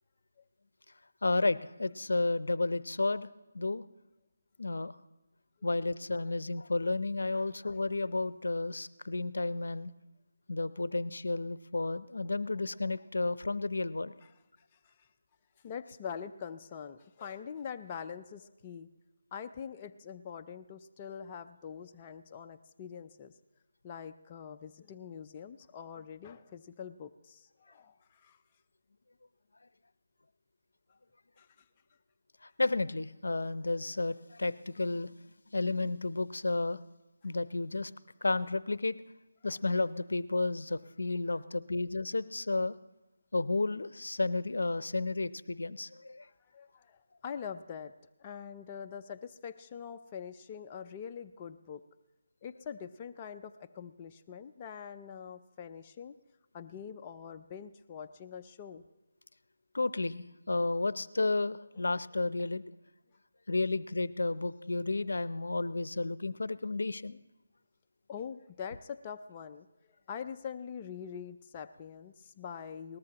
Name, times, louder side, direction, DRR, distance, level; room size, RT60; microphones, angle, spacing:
voice 1, 1.2-3.3 3.5-3.8 4.6-4.9 5.6-9.9 10.5-14.1 32.4-35.1 35.5-36.8 37.2-37.9 38.2-38.9 39.4-42.8 43.3-46.3 59.7-62.6 63.5-67.2, left 2 dB, 80° left, 16 dB, 0.6 m, -32 dB
voice 2, 15.6-18.9 19.3-23.3 23.8-28.4 31.4-31.5 46.5-47.9 48.2-51.8 52.4-56.2 56.5-58.8 61.8-61.9 68.1-69.7 70.1-73.0, left 7 dB, 20° left, 6 dB, 0.4 m, -44 dB
21.0 x 19.0 x 2.9 m, 1.0 s
figure-of-eight pair, 165°, 0 cm